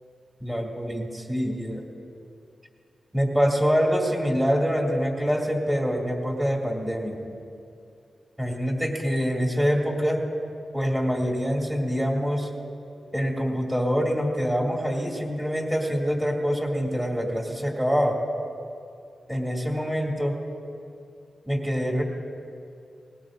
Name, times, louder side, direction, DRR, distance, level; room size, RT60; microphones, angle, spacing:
voice 1, 0.4-1.9 3.1-7.2 8.4-10.2 10.7-12.5 13.1-18.2 19.3-20.4 21.4-22.0, equal, 10° right, -1 dB, 2.4 m, -25 dB
20.0 x 18.0 x 2.6 m, 2.5 s
cardioid pair, 85°, 0 cm